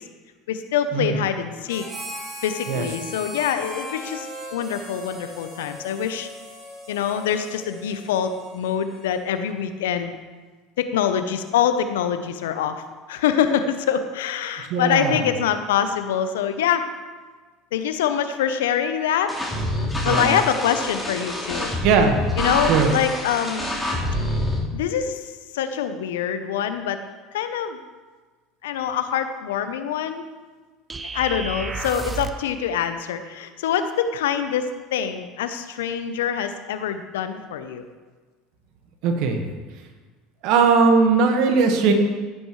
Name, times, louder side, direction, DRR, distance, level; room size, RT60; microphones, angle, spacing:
voice 1, 0.5-1.9 2.4-6.3 6.9-10.1 10.8-12.7 13.1-16.8 17.7-19.3 20.0-21.7 22.4-23.7 24.7-27.0 27.3-27.8 28.6-30.3 31.1-37.9, left 8 dB, 80° left, 9 dB, 0.8 m, -25 dB
Harmonica, 1.7-9.4, equal, 40° right, 3.6 m, -39 dB
voice 2, 14.7-15.2 20.0-20.4 21.8-22.2 22.7-22.9 39.0-39.4 40.4-41.9, right 5 dB, 65° right, 5 dB, 1.5 m, -19 dB
sound 1, 19.3-24.6, left 1 dB, 5° left, 4.0 m, -26 dB
sound 2, 30.9-32.5, right 4 dB, 20° right, 0.8 m, -31 dB
15.0 x 8.8 x 3.2 m, 1.4 s
hypercardioid pair, 75°, 0 cm